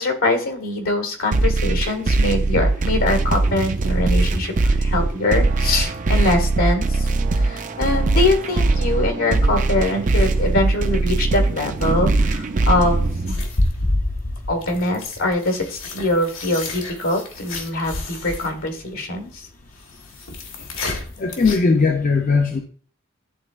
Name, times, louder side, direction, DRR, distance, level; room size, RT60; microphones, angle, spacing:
voice 1, 0.0-7.1 7.3-13.4 14.5-19.5, left 2 dB, 85° left, 4 dB, 1.9 m, -23 dB
sound 1, 1.3-13.3, right 3 dB, 35° right, 0.4 m, -20 dB
sound 2, 3.6-15.1, equal, 70° right, 1.6 m, -45 dB
sound 3, 13.3-21.6, left 2 dB, 70° left, 1.3 m, -28 dB
voice 2, 21.2-22.6, left 4 dB, 40° left, 3 dB, 0.5 m, -18 dB
11.0 x 3.8 x 2.4 m, 0.43 s
head